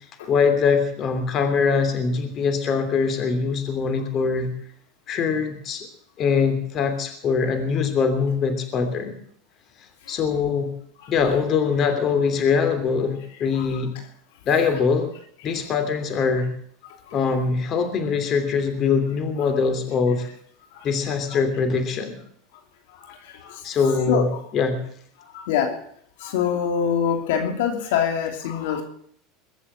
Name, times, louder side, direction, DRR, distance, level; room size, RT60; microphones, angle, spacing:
voice 1, 0.3-4.5 5.1-5.9 6.2-9.2 10.1-10.7 11.1-13.9 14.4-15.1 15.4-16.5 17.1-20.3 20.8-22.2 23.6-24.8, left 5 dB, 40° left, 8 dB, 3.0 m, -22 dB
voice 2, 23.8-24.3 25.5-25.7 26.2-28.8, left 7 dB, 80° left, 4 dB, 2.9 m, -24 dB
22.5 x 7.6 x 7.4 m, 0.62 s
supercardioid pair, 120°, 0 cm